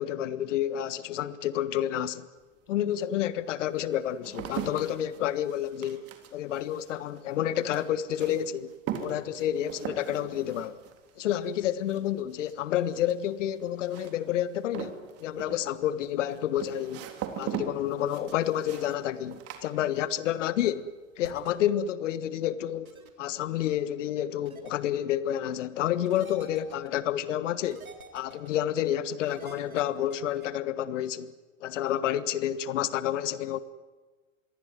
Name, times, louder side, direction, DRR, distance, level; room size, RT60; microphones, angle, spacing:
voice 1, 0.0-2.3 2.7-6.0 6.3-8.7 9.0-10.8 11.2-17.1 17.4-20.9 21.2-22.9 23.2-27.8 28.1-31.3 31.6-33.6, left 11 dB, 60° left, 1.5 m, -29 dB
sound 1, 2.4-2.5 3.2-20.4 20.6-21.2, right 9 dB, 35° right, 3.7 m, -41 dB
sound 2, 21.2-21.5 22.9-23.1 24.5-24.7 26.1-26.9 27.7-28.5 29.3-30.5, right 3 dB, 85° right, 3.8 m, -49 dB
26.5 x 22.5 x 9.4 m
hypercardioid pair, 100°, 41 cm